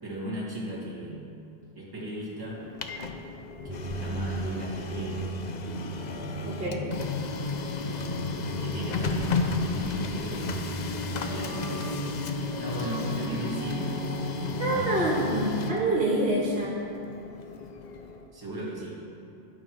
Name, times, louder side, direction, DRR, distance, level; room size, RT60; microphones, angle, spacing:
voice 1, 0.0-1.3 1.8-2.6 3.6-5.2 7.8-10.7 11.1-12.1 12.6-14.1 14.6-15.0 18.3-19.0, right 1 dB, 20° right, -6 dB, 1.9 m, -37 dB
Printer, 2.5-18.3, left 4 dB, 50° left, 0.6 m, -34 dB
sound 1, 3.6-15.5, equal, 40° right, 2.3 m, -36 dB
voice 2, 6.4-6.9 14.6-16.8, right 1 dB, 70° right, -4 dB, 1.7 m, -26 dB
11.5 x 6.3 x 4.5 m, 2.5 s
omnidirectional pair, 1.0 m